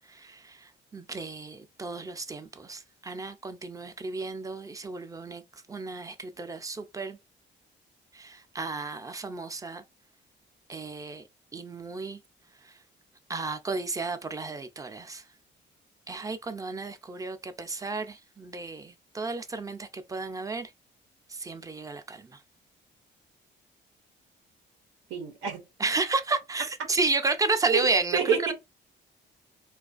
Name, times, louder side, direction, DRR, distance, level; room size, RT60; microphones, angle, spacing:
voice 1, 0.0-7.2 8.1-9.8 10.7-11.2 11.5-12.2 12.6-12.7 13.3-15.2 16.1-20.7 21.3-22.4 25.8-28.5, right 3 dB, 15° right, 0.4 m, -32 dB
voice 2, 25.1-25.6 27.7-27.9 28.1-28.5, right 7 dB, 90° right, 0.7 m, -27 dB
2.4 x 2.2 x 2.4 m
cardioid pair, 90°, 20 cm